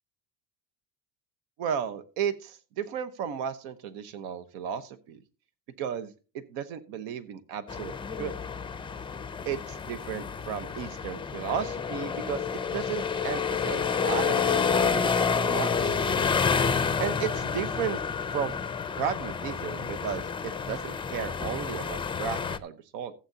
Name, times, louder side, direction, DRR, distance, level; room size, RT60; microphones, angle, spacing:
voice 1, 1.6-5.2 5.8-8.3 9.5-12.4 12.7-16.0 17.0-18.0 18.3-18.5 19.0-23.1, right 8 dB, 90° right, 11 dB, 1.1 m, -34 dB
sound 1, 7.7-22.6, left 6 dB, 15° left, 0.4 m, -29 dB
15.5 x 8.0 x 2.8 m, 0.34 s
cardioid pair, 120°, 43 cm